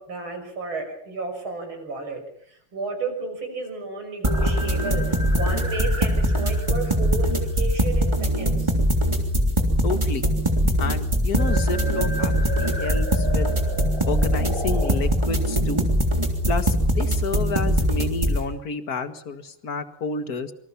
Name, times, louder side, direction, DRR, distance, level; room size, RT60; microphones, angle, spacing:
voice 1, 0.0-8.7, right 3 dB, 65° right, 5 dB, 6.9 m, -32 dB
sound 1, 4.2-18.4, equal, 10° right, 3.1 m, -22 dB
voice 2, 9.8-10.3 10.6-13.5 14.1-15.9 16.5-20.5, left 4 dB, 45° left, 10 dB, 2.1 m, -30 dB
27.0 x 25.0 x 5.8 m, 0.65 s
omnidirectional pair, 2.4 m